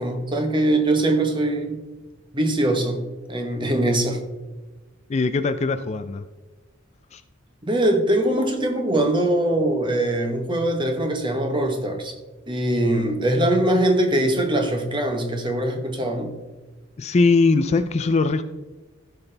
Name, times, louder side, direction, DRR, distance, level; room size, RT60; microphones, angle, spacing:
voice 1, 0.0-1.8 2.3-3.0 3.3-4.2 7.6-12.2 12.5-16.4, right 1 dB, 25° right, 1.1 m, -22 dB
voice 2, 5.1-6.2 7.1-7.2 17.0-18.4, left 3 dB, 35° left, 0.3 m, -20 dB
15.5 x 5.8 x 3.3 m
head